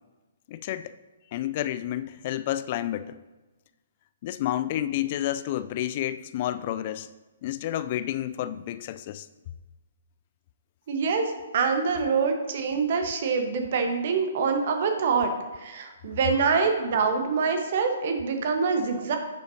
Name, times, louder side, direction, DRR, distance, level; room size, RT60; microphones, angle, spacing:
voice 1, 0.5-0.9 1.3-3.2 4.2-7.1 7.4-9.3, left 12 dB, 40° left, 13 dB, 0.3 m, -30 dB
voice 2, 10.9-15.3 15.6-19.2, right 5 dB, 50° right, 5 dB, 1.2 m, -25 dB
11.0 x 6.8 x 2.8 m, 1.2 s
figure-of-eight pair, 125°, 0 cm